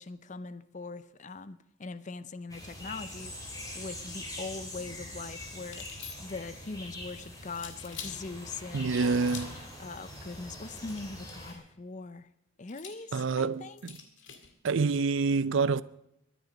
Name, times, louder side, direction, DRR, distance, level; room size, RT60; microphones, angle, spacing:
voice 1, 0.0-5.9 6.2-9.4 9.8-12.3 12.6-13.8, left 3 dB, 35° left, 0.6 m, -41 dB
sound 1, 2.5-11.5, left 1 dB, 15° left, 3.6 m, -43 dB
sound 2, 5.7-6.5 7.5-8.2 9.2-9.7 10.7-11.5 12.7-14.5, left 7 dB, 65° left, 1.9 m, -46 dB
voice 2, 8.7-9.6 13.1-14.0 14.6-15.8, right 4 dB, 65° right, 0.5 m, -27 dB
22.5 x 9.4 x 5.2 m
head